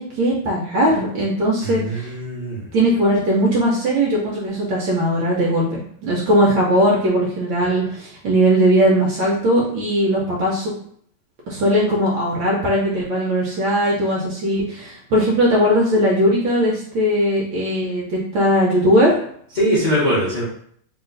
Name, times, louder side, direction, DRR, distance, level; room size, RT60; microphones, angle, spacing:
voice 1, 0.0-2.1 2.7-10.7 11.5-19.2, equal, 70° right, -4 dB, 1.4 m, -19 dB
voice 2, 1.6-2.6 19.5-20.4, equal, 55° left, -9 dB, 0.5 m, -21 dB
3.2 x 2.9 x 3.7 m, 0.63 s
omnidirectional pair, 2.3 m